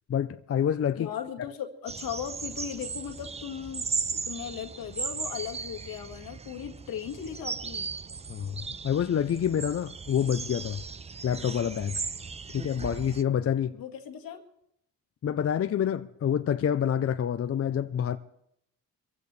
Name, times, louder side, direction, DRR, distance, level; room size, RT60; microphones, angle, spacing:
voice 1, 0.1-1.1 8.3-10.8 11.2-12.0 12.5-13.8 15.2-18.2, left 9 dB, 40° left, 0.6 m, -27 dB
voice 2, 0.9-7.9 13.7-14.4, left 8 dB, 75° left, 1.8 m, -37 dB
sound 1, 1.9-13.2, right 4 dB, 20° right, 0.5 m, -37 dB
23.5 x 15.0 x 3.3 m
cardioid pair, 75°, 35 cm